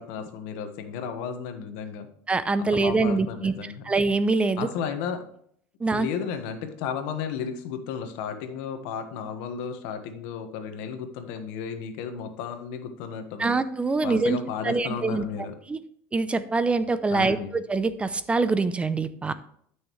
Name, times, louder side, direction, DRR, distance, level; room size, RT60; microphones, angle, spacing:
voice 1, 0.0-2.1 2.6-3.8 4.6-5.3 5.9-13.5 14.0-15.5 17.1-17.6, left 7 dB, 75° left, 7 dB, 1.4 m, -34 dB
voice 2, 2.3-3.5 3.9-4.7 5.8-6.1 13.4-14.4 14.6-15.2 15.7-15.8 16.1-19.3, right 3 dB, 15° right, 13 dB, 0.6 m, -24 dB
12.5 x 6.4 x 3.2 m, 0.64 s
supercardioid pair, 120°, 7 cm